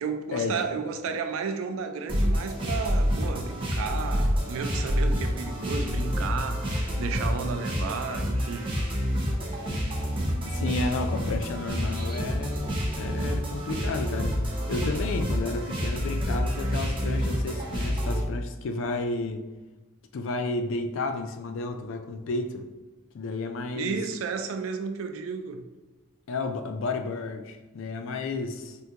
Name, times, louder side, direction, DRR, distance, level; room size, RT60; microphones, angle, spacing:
voice 1, 0.0-8.7 23.7-25.7, right 5 dB, 75° right, 0.3 m, -33 dB
sound 1, 2.1-18.2, equal, 25° right, 0.6 m, -28 dB
voice 2, 10.4-14.4 14.7-19.4 20.1-22.7 23.1-24.0 26.3-28.8, left 3 dB, 65° left, 0.3 m, -32 dB
3.6 x 2.2 x 2.8 m
head